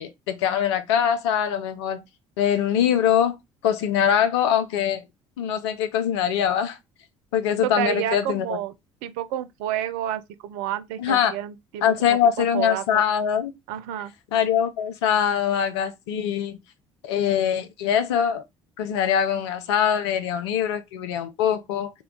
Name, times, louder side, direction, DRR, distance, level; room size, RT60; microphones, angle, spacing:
voice 1, 0.0-2.0 2.4-3.3 3.6-5.0 5.4-6.8 7.3-8.6 11.0-11.3 11.8-13.5 14.3-16.6 17.0-18.4 18.8-21.9, left 9 dB, 70° left, 0.6 m, -23 dB
voice 2, 7.6-8.7 9.0-13.0 13.7-14.1, right 12 dB, 65° right, 0.4 m, -30 dB
3.8 x 2.3 x 3.6 m
figure-of-eight pair, 55°, 15 cm